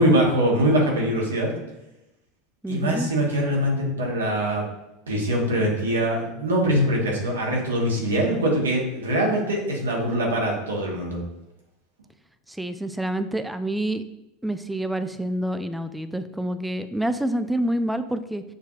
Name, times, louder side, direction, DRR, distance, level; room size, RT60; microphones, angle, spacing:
voice 1, 0.0-1.5 2.7-4.6 5.1-11.2, right 1 dB, 85° right, -2 dB, 1.1 m, -23 dB
voice 2, 2.6-3.1 12.5-14.0 14.4-18.4, right 1 dB, 5° right, 10 dB, 0.3 m, -27 dB
6.5 x 2.7 x 2.4 m, 0.92 s
hypercardioid pair, 85°, 0 cm